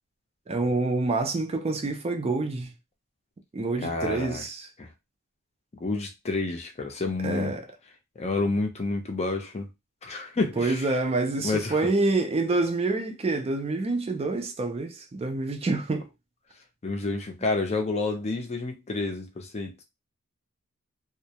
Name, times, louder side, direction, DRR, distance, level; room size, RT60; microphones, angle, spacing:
voice 1, 0.5-2.7 3.5-4.7 7.2-7.6 10.6-16.1, right 3 dB, 25° right, 0.4 m, -27 dB
voice 2, 3.8-4.4 4.8-4.9 5.8-7.5 8.2-9.7 10.0-10.9 11.4-11.9 16.8-19.8, left 3 dB, 30° left, 0.5 m, -29 dB
2.2 x 2.0 x 2.7 m
head